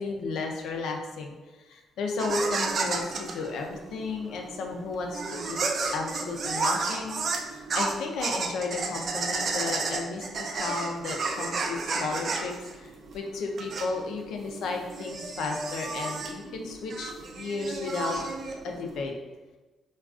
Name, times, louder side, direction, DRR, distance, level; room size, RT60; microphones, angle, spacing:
voice 1, 0.0-5.6 5.9-7.1 7.5-18.2 18.6-19.1, left 3 dB, 80° left, 2 dB, 0.4 m, -33 dB
sound 1, 2.2-19.0, right 4 dB, 55° right, 0.3 m, -32 dB
3.5 x 2.3 x 2.4 m, 1.2 s
cardioid pair, 90°, 0 cm